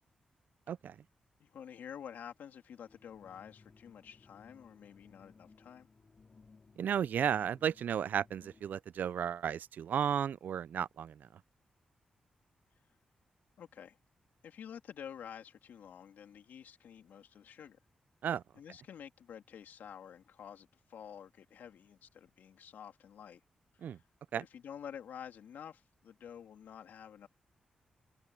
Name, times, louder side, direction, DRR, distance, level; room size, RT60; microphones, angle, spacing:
voice 1, 1.4-5.9 13.6-14.0 14.4-17.8 18.5-23.4 23.7-24.0 24.4-27.3, left 8 dB, 80° left, 3.1 m, -50 dB
sound 1, 2.8-8.8, left 4 dB, 45° left, 3.6 m, -62 dB
voice 2, 6.8-11.4 18.2-18.4 23.8-24.0 24.3-24.4, right 8 dB, 75° right, 0.4 m, -34 dB
open air
supercardioid pair, 45°, 3 cm